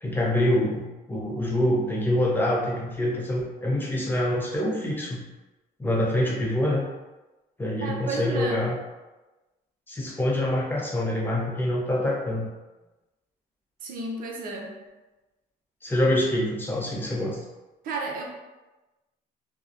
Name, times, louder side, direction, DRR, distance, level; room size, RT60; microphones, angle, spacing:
voice 1, 0.0-5.2 5.8-6.8 7.6-8.7 9.9-12.5 15.8-17.4, left 1 dB, 10° left, -4 dB, 0.6 m, -25 dB
voice 2, 7.8-8.7 13.8-14.8 17.8-18.2, right 3 dB, 55° right, 0 dB, 0.5 m, -32 dB
2.7 x 2.0 x 2.4 m, 1.1 s
cardioid pair, 110°, 17 cm